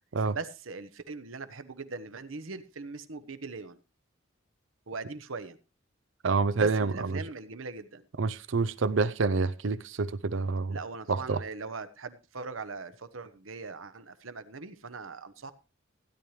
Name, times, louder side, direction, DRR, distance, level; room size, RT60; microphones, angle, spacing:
voice 1, 0.3-3.8 4.9-5.6 6.6-8.0 10.7-15.5, right 4 dB, 90° right, 1.0 m, -40 dB
voice 2, 6.2-7.2 8.2-10.8 11.1-11.4, right 4 dB, 70° right, 0.6 m, -27 dB
16.0 x 10.5 x 3.3 m
head